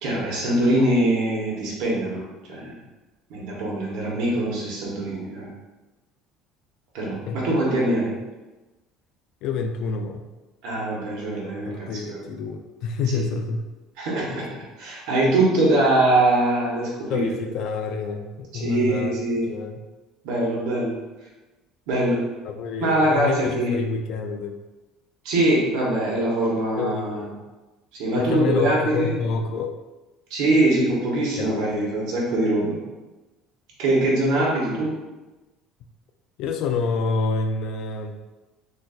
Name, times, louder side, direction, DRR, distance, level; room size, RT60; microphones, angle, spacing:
voice 1, 0.0-2.8 3.3-5.5 6.9-8.2 10.6-12.2 13.1-13.2 14.0-14.4 14.8-17.3 18.6-19.4 20.2-21.0 21.9-22.3 22.8-23.8 25.2-27.3 27.9-29.1 30.3-32.8 33.8-34.9, right 1 dB, 75° right, -4 dB, 1.1 m, -23 dB
voice 2, 7.1-7.4 9.4-10.2 11.7-13.6 14.4-14.5 17.1-19.2 19.5-19.8 22.4-24.6 26.8-27.4 28.1-29.7 31.4-32.0 36.4-38.2, left 4 dB, 60° left, 5 dB, 0.3 m, -28 dB
3.9 x 2.5 x 2.4 m, 1.1 s
cardioid pair, 140°, 0 cm